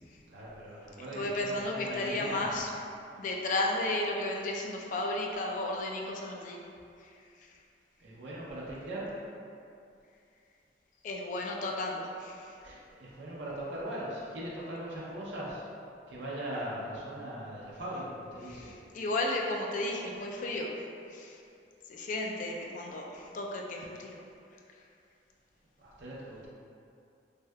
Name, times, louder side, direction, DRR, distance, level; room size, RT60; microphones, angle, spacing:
voice 1, 0.3-2.5 8.0-9.1 12.6-15.6 16.1-18.7 25.8-26.5, right 1 dB, 80° right, -7 dB, 0.6 m, -40 dB
voice 2, 1.1-2.7 3.2-6.6 7.0-7.6 11.0-12.6 18.4-21.4 21.9-24.2 24.5-24.6, left 2 dB, 45° left, 0 dB, 0.3 m, -34 dB
3.4 x 2.6 x 2.2 m, 2.5 s
head